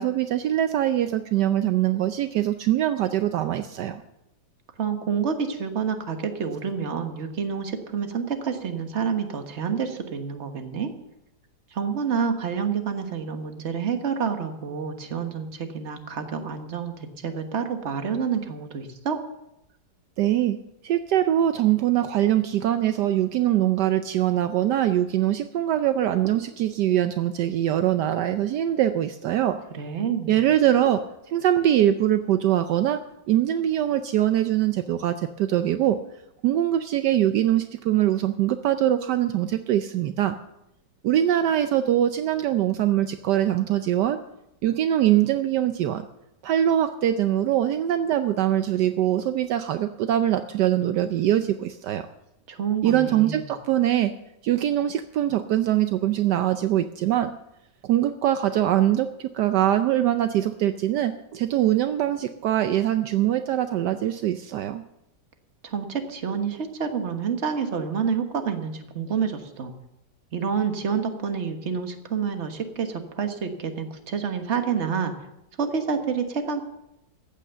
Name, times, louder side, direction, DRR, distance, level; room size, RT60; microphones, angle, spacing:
voice 1, 0.0-4.0 20.2-20.6 20.8-29.6 30.3-33.0 33.3-36.0 36.4-40.4 41.0-44.2 44.6-46.1 46.4-52.1 52.8-54.1 54.4-57.3 57.8-64.8, right 12 dB, 75° right, 9 dB, 1.2 m, -23 dB
voice 2, 4.8-10.9 11.7-19.2 29.7-30.4 52.5-53.4 65.6-69.7 70.3-75.1 75.6-76.6, right 6 dB, 40° right, 6 dB, 1.5 m, -28 dB
15.0 x 8.9 x 6.8 m, 0.87 s
omnidirectional pair, 1.9 m